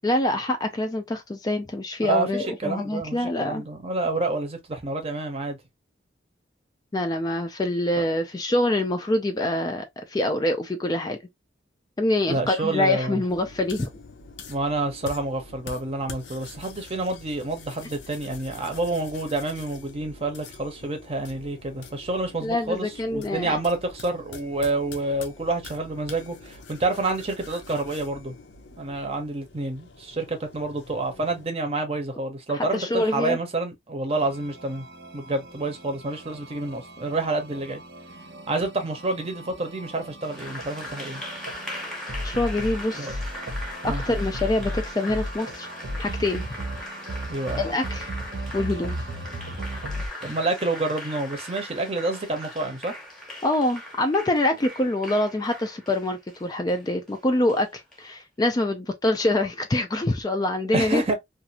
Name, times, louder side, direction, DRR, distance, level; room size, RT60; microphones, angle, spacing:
voice 1, 0.0-3.6 6.9-11.2 12.0-13.9 22.4-23.6 32.5-33.4 42.2-43.2 43.8-45.7 46.0-46.4 47.6-48.1 48.5-49.0 53.4-61.1, left 1 dB, 20° left, 0.3 m, -25 dB
voice 2, 2.0-5.6 12.3-13.2 14.5-28.3 28.8-34.8 35.1-37.8 38.5-41.2 42.9-43.1 43.9-44.0 47.3-47.6 50.2-52.9 60.7-61.1, right 2 dB, 35° right, 0.7 m, -28 dB
sound 1, 13.3-31.5, left 3 dB, 70° left, 0.6 m, -45 dB
sound 2, 34.1-50.1, equal, 70° right, 0.7 m, -36 dB
Applause, 40.2-58.0, left 1 dB, 5° left, 0.8 m, -40 dB
2.5 x 2.4 x 2.8 m
head